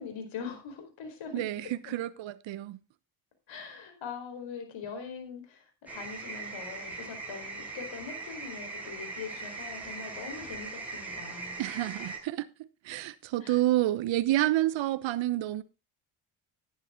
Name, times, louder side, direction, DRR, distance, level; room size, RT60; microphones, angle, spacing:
voice 1, 0.0-1.5 1.8-1.9 3.5-11.6 13.4-13.6, left 6 dB, 60° left, 4.8 m, -42 dB
voice 2, 1.3-2.8 11.6-15.6, right 15 dB, 60° right, 1.0 m, -29 dB
sound 1, 5.9-12.2, right 3 dB, 5° right, 6.6 m, -40 dB
10.5 x 10.5 x 3.8 m
supercardioid pair, 65°, 50 cm